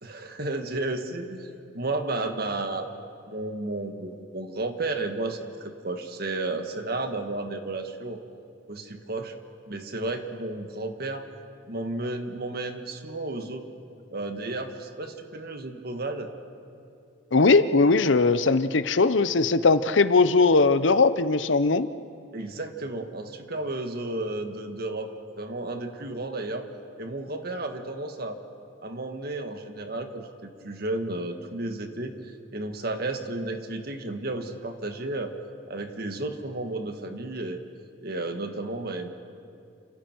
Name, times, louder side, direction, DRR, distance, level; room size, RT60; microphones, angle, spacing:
voice 1, 0.0-2.9 3.3-8.2 8.7-9.3 9.7-11.3 11.7-13.6 14.1-16.3 22.3-26.7 27.0-28.4 28.8-35.3 35.7-37.6 38.0-39.1, right 2 dB, 55° right, 6 dB, 1.7 m, -33 dB
voice 2, 17.3-21.9, left 3 dB, 75° left, 13 dB, 0.8 m, -20 dB
29.5 x 27.0 x 4.6 m, 2.5 s
head